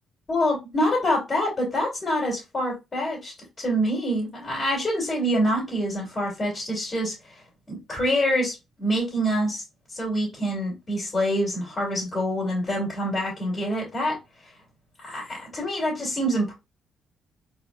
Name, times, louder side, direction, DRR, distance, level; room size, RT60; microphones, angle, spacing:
voice 1, 0.3-7.4 7.7-9.6 9.9-14.2 15.0-16.5, equal, 30° left, 2.9 m, -26 dB
4.3 x 4.2 x 2.3 m
cardioid pair, 90°, 0 cm